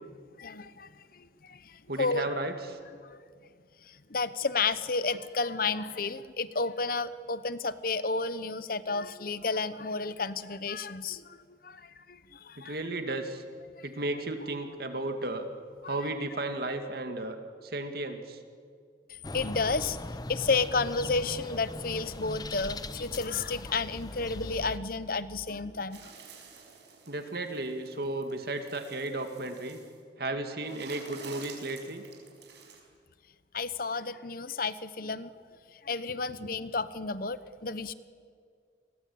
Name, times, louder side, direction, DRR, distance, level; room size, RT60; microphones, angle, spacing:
voice 1, 0.4-2.3 3.9-11.4 11.6-12.8 13.8-13.9 15.8-16.0 19.3-20.0 20.3-26.1 33.5-35.3 35.8-37.9, left 4 dB, 50° left, 14 dB, 1.0 m, -32 dB
voice 2, 1.9-2.8 12.6-13.4 13.8-15.5 15.8-17.4 17.6-18.4 27.1-29.8 30.2-32.0, right 2 dB, 55° right, 6 dB, 2.2 m, -34 dB
sound 1, 19.2-24.8, left 2 dB, 20° left, 0.9 m, -40 dB
sound 2, 25.9-30.0 30.6-32.8, right 5 dB, 70° right, 5.8 m, -50 dB
29.5 x 22.0 x 8.6 m, 2.2 s
head